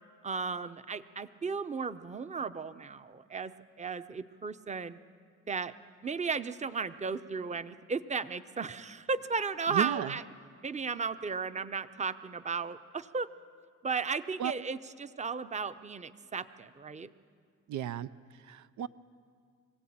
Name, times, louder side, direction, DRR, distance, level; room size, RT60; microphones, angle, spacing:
voice 1, 0.2-3.5 3.8-5.0 5.5-5.7 6.0-10.2 10.6-13.3 13.8-17.1, right 5 dB, 25° right, 13 dB, 0.8 m, -35 dB
voice 2, 9.7-10.1 14.4-14.5 17.7-18.9, right 10 dB, 75° right, 14 dB, 0.7 m, -34 dB
24.5 x 16.5 x 8.7 m, 2.1 s
cardioid pair, 90°, 30 cm